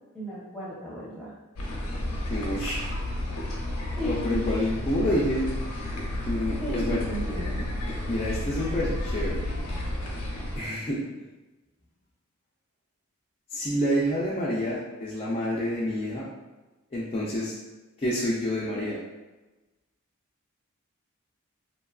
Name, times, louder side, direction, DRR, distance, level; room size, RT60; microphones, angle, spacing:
voice 1, 0.1-1.3 4.0-4.4 6.6-7.7, right 1 dB, ahead, -9 dB, 0.8 m, -34 dB
sound 1, 1.6-10.6, left 1 dB, 85° left, 0.6 m, -31 dB
voice 2, 2.3-2.8 4.0-5.5 6.3-7.0 8.1-9.4 10.5-11.0 13.5-16.3 16.9-17.5 18.0-19.0, equal, 25° left, -8 dB, 0.4 m, -28 dB
2.7 x 2.3 x 2.3 m, 1.1 s
head